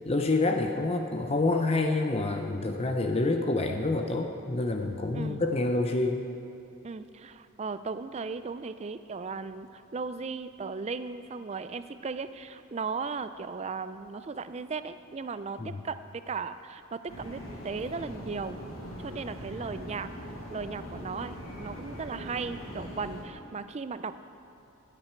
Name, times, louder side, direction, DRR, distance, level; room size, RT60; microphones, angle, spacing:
voice 1, 0.0-6.3 15.6-15.8, left 2 dB, 30° left, 4 dB, 0.5 m, -27 dB
voice 2, 6.8-18.6 19.0-20.1 20.5-24.2, right 4 dB, 30° right, 12 dB, 0.4 m, -36 dB
sound 1, 17.1-23.2, equal, 85° left, 3.1 m, -41 dB
20.0 x 8.8 x 4.5 m, 2.7 s
head